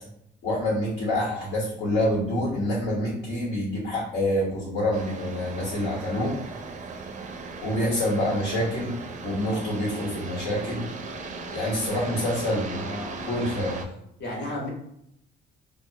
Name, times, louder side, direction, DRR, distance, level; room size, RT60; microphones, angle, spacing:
voice 1, 0.4-6.4 7.6-9.0 9.2-10.8 11.5-12.9 13.3-13.8, left 1 dB, 80° left, -7 dB, 1.2 m, -27 dB
sound 1, 4.9-13.9, right 3 dB, 40° right, 0.4 m, -37 dB
voice 2, 12.7-13.1 14.2-14.7, left 1 dB, 55° left, -2 dB, 1.1 m, -33 dB
2.8 x 2.1 x 2.7 m, 0.74 s
cardioid pair, 90°, 20 cm